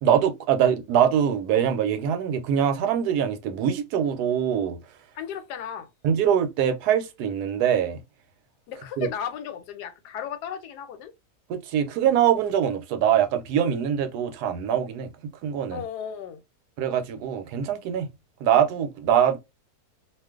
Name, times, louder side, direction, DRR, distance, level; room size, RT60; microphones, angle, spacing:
voice 1, 0.0-4.8 6.0-8.0 9.0-9.1 11.5-15.1 15.4-15.8 16.8-18.1 18.4-19.4, right 9 dB, 75° right, 1.1 m, -23 dB
voice 2, 5.1-5.9 8.7-11.1 15.7-16.4, left 8 dB, 80° left, 1.1 m, -35 dB
2.5 x 2.4 x 3.5 m
omnidirectional pair, 1.7 m